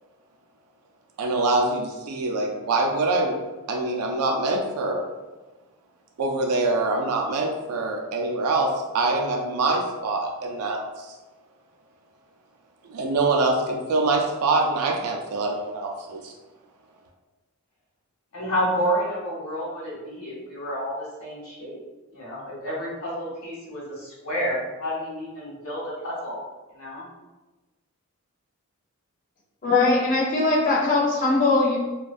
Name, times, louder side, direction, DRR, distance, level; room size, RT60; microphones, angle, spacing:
voice 1, 1.2-3.4 3.7-5.0 6.2-11.1 12.9-16.3, right 2 dB, 80° right, 1 dB, 0.3 m, -24 dB
voice 2, 18.3-21.8 22.1-26.4 26.7-27.1, equal, 75° left, -6 dB, 0.9 m, -30 dB
voice 3, 29.6-31.8, left 3 dB, 35° left, -5 dB, 0.5 m, -20 dB
2.5 x 2.2 x 2.3 m, 1.2 s
head